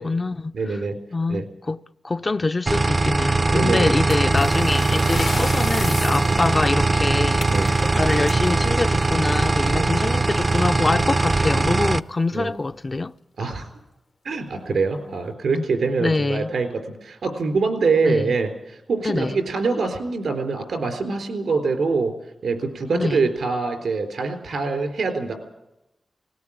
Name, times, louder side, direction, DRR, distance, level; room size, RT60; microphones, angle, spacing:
voice 1, 0.0-0.8 1.1-13.1 15.5-15.6 16.0-16.5 18.0-18.4 19.0-19.4 22.9-23.3, left 3 dB, 40° left, 0.7 m, -25 dB
voice 2, 0.5-1.0 1.3-1.4 3.5-3.9 6.2-6.4 7.5-7.7 9.7-9.9 12.3-12.5 13.4-13.7 14.2-22.1 22.4-25.3, right 4 dB, 85° right, 3.9 m, -24 dB
sound 1, 2.7-12.0, right 3 dB, 40° right, 0.7 m, -21 dB
sound 2, 4.1-9.5 10.7-10.9 11.2-11.3 11.9-12.0 12.7-13.0, left 4 dB, 85° left, 1.9 m, -34 dB
19.0 x 16.5 x 8.6 m
cardioid pair, 45°, 0 cm